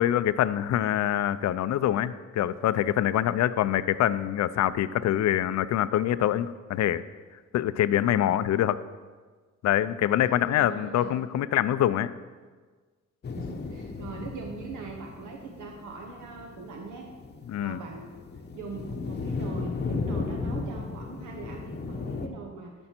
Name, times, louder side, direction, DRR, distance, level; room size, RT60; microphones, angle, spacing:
voice 1, 0.0-7.0 7.5-8.8 9.6-12.1 17.5-17.8, left 12 dB, 65° left, 15 dB, 0.4 m, -25 dB
voice 2, 10.2-11.1 13.3-17.1 17.6-18.1 18.5-22.7, right 4 dB, 80° right, 2 dB, 1.0 m, -41 dB
sound 1, 13.2-22.3, left 4 dB, 35° left, 0.8 m, -35 dB
12.5 x 5.4 x 4.4 m, 1.4 s
cardioid pair, 130°, 30 cm